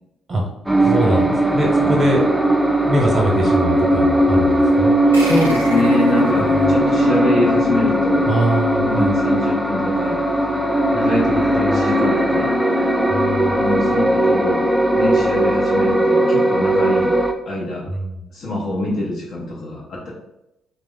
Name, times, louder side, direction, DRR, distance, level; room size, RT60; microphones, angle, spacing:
sound 1, 0.7-17.3, right 1 dB, 5° right, 0.4 m, -18 dB
voice 1, 0.8-2.2 2.8-4.9 6.5-6.7 8.3-9.1 11.6-11.8 13.1-13.6 17.9-18.2, right 1 dB, 30° right, -1 dB, 0.9 m, -22 dB
voice 2, 5.1-8.3 8.8-10.2 10.9-12.5 13.6-17.1 17.5-17.9 18.3-20.1, left 2 dB, 50° left, -4 dB, 0.7 m, -24 dB
sound 2, 5.1-8.2, right 1 dB, 85° right, 0.4 m, -34 dB
2.8 x 2.2 x 3.8 m, 0.86 s
figure-of-eight pair, 45°, 0 cm